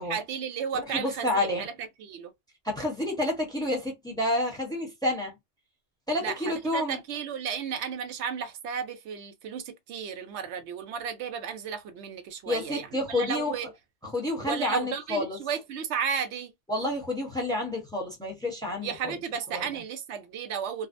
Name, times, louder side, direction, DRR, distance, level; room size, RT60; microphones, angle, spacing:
voice 1, 0.1-2.3 6.1-13.7 14.4-16.5 18.8-20.9, right 7 dB, 85° right, 0.9 m, -34 dB
voice 2, 0.9-1.7 2.6-5.3 6.1-7.0 12.5-13.5 14.0-15.4 16.7-19.1 19.5-19.6, left 1 dB, 5° left, 0.8 m, -29 dB
2.5 x 2.0 x 2.5 m
omnidirectional pair, 1.1 m